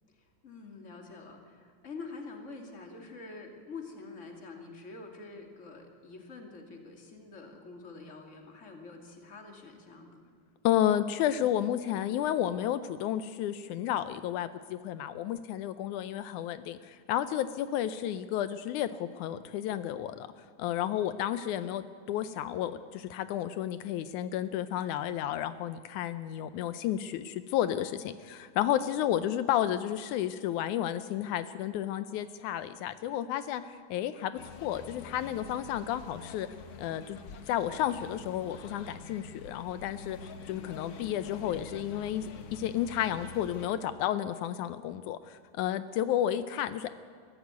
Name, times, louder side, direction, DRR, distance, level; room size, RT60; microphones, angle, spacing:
voice 1, 0.1-10.2, left 3 dB, 25° left, 3 dB, 2.6 m, -46 dB
voice 2, 10.6-20.3 20.6-36.5 36.8-37.2 37.5-40.2 40.5-42.3 42.5-46.9, left 11 dB, 80° left, 12 dB, 2.1 m, -32 dB
sound 1, 34.3-43.7, left 4 dB, 55° left, 2.0 m, -46 dB
22.5 x 14.5 x 9.4 m, 2.1 s
omnidirectional pair, 3.5 m